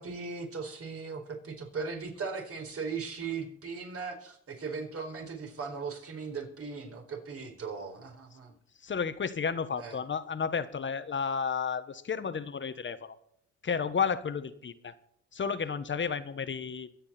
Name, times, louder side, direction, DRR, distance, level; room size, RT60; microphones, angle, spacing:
voice 1, 0.0-8.5 9.8-10.0, right 5 dB, 50° right, 4 dB, 4.6 m, -38 dB
voice 2, 8.8-13.2 13.6-14.9 15.3-16.9, left 6 dB, 40° left, 12 dB, 1.4 m, -32 dB
23.0 x 8.8 x 4.4 m, 0.68 s
cardioid pair, 90°, 30 cm